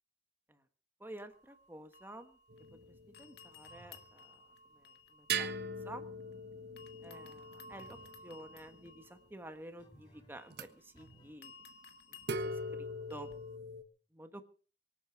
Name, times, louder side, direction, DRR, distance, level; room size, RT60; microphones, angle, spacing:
voice 1, 1.0-2.4 3.2-4.4 4.7-5.5 5.8-6.0 7.0-11.5 12.3-13.3 14.1-14.4, right 1 dB, 10° right, 8 dB, 1.4 m, -51 dB
sound 1, 1.3-2.8 3.1-6.4 6.8-13.6, left 2 dB, 65° left, 2.0 m, -57 dB
sound 2, 2.5-3.7 5.3-9.0 10.5-10.7 12.2-13.8, right 2 dB, 65° right, 1.4 m, -41 dB
sound 3, 3.7-4.2 7.7-8.3 9.8-10.5 10.9-11.5, right 1 dB, 30° left, 3.1 m, -60 dB
24.0 x 8.6 x 5.8 m, 0.40 s
head